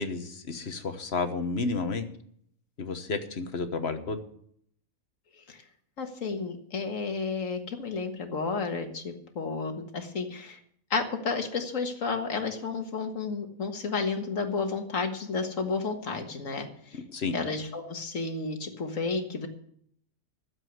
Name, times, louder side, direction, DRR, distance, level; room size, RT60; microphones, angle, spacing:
voice 1, 0.0-2.1 2.8-4.2 16.9-17.4, left 4 dB, 50° left, 8 dB, 1.4 m, -31 dB
voice 2, 6.0-10.6 10.9-17.0 17.3-19.5, left 4 dB, 65° left, 5 dB, 1.9 m, -32 dB
12.5 x 7.6 x 7.9 m, 0.66 s
omnidirectional pair, 1.5 m